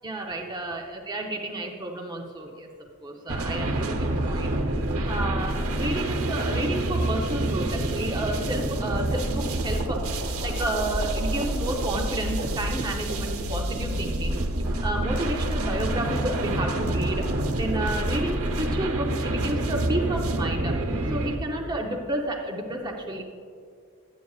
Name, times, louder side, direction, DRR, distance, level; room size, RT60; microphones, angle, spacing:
voice 1, 0.0-2.7 3.0-4.6 5.1-17.3 17.5-20.8 21.1-23.2, right 1 dB, 20° right, 1 dB, 0.7 m, -31 dB
sound 1, 3.3-21.4, right 1 dB, 80° right, 0.9 m, -27 dB
12.0 x 9.2 x 2.4 m, 2.3 s
head